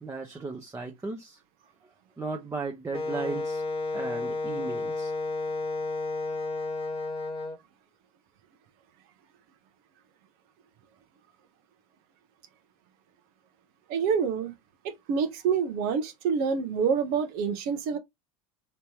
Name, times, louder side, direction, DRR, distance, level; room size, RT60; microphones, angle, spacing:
voice 1, 0.0-1.4 2.2-3.6 3.9-5.1, right 4 dB, 15° right, 0.9 m, -36 dB
Wind instrument woodwind instrument, 2.9-7.6, left 3 dB, 30° left, 1.1 m, -32 dB
voice 2, 13.9-14.5 15.1-18.0, right 6 dB, 55° right, 1.0 m, -27 dB
3.3 x 3.0 x 2.9 m
hypercardioid pair, 85°, 18 cm